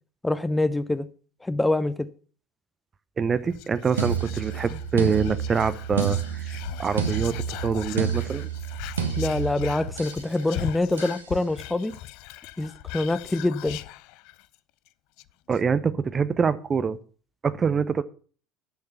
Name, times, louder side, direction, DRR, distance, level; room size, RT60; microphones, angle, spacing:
voice 1, 0.2-1.1 1.4-2.1 9.2-11.9 12.6-13.8, left 2 dB, 10° left, 0.7 m, -25 dB
voice 2, 3.2-8.5 15.5-17.0 17.4-18.0, right 6 dB, 25° right, 0.7 m, -25 dB
Whispering, 3.5-14.6 14.9-15.0 15.2-15.6, left 16 dB, 55° left, 0.4 m, -39 dB
sound 1, 4.0-10.3 11.0-11.3, right 7 dB, 75° right, 1.2 m, -30 dB
9.5 x 6.7 x 6.9 m
figure-of-eight pair, 65°, 0 cm